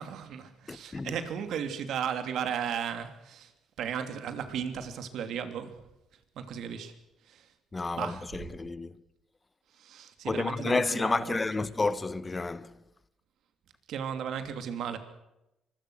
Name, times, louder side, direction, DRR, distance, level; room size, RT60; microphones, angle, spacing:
voice 1, 0.0-3.5 3.8-5.8 6.3-6.9 7.2-7.5 8.0-8.5 9.7-11.8 13.9-15.0, right 8 dB, 70° right, 2.9 m, -35 dB
voice 2, 0.7-1.2 7.7-9.0 10.3-12.7, left 3 dB, 20° left, 1.1 m, -30 dB
24.5 x 21.5 x 6.4 m
cardioid pair, 100°, 0 cm